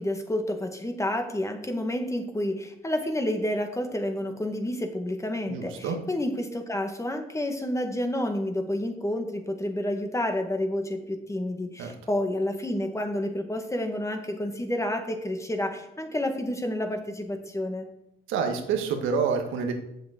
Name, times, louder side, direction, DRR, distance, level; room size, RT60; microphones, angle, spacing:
voice 1, 0.0-17.9, left 1 dB, 15° left, 5 dB, 1.8 m, -29 dB
voice 2, 5.5-6.0 11.8-11.9 18.3-19.7, right 6 dB, 90° right, 4 dB, 1.5 m, -27 dB
7.3 x 7.1 x 8.1 m, 0.83 s
cardioid pair, 90°, 20 cm